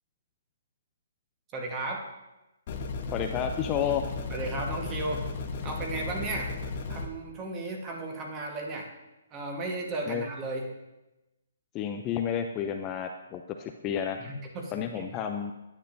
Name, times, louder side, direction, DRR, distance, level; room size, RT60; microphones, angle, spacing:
voice 1, 1.5-2.1 4.3-5.3 5.6-6.5 6.9-8.9 9.3-10.7 14.2-15.1, right 2 dB, 20° right, 1 dB, 1.2 m, -35 dB
sound 1, 2.7-7.1, left 3 dB, 40° left, 1.0 m, -35 dB
voice 2, 3.1-4.0 10.1-10.2 11.7-14.2 14.7-15.5, left 8 dB, 20° left, 4 dB, 0.4 m, -31 dB
10.0 x 8.7 x 2.6 m, 1.0 s
hypercardioid pair, 160°, 0 cm